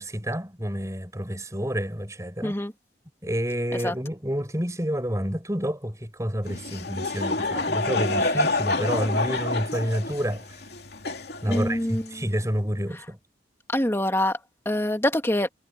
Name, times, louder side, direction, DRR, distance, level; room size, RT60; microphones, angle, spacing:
voice 1, 0.0-2.5 3.2-10.4 11.4-13.2, equal, 15° right, 7.6 m, -29 dB
voice 2, 2.4-2.7 3.7-3.9 11.4-12.2 13.7-14.4 14.7-15.5, left 1 dB, 15° left, 2.3 m, -25 dB
Laughter / Crowd, 6.4-12.2, left 2 dB, 60° left, 3.0 m, -28 dB
head